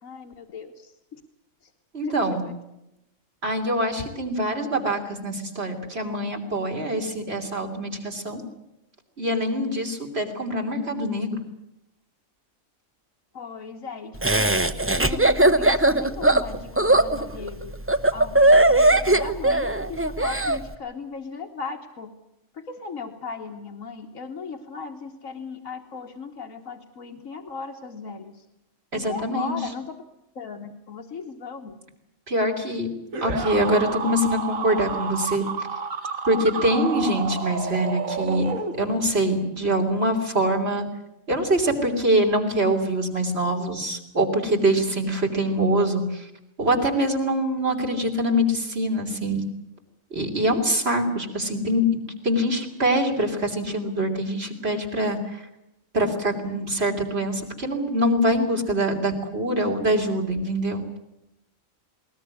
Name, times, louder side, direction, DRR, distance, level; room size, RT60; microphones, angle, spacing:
voice 1, 0.0-1.2 2.0-2.1 2.4-2.5 13.3-14.6 15.0-17.7 18.1-22.1 22.5-28.4 28.9-30.0 30.3-31.8, left 5 dB, 75° left, 1 dB, 1.8 m, -37 dB
voice 2, 1.9-2.4 3.4-8.4 9.2-11.4 28.9-29.6 32.3-32.9 33.2-35.5 36.3-38.5 38.8-40.8 41.3-46.3 46.6-49.5 50.1-55.4 55.9-60.8, right 1 dB, 50° right, 3 dB, 3.4 m, -24 dB
Laughter, 14.2-20.6, right 2 dB, 10° right, 0.7 m, -19 dB
sound 1, 33.1-39.2, right 5 dB, 80° right, 2.0 m, -30 dB
20.5 x 19.5 x 9.7 m, 0.88 s
omnidirectional pair, 1.4 m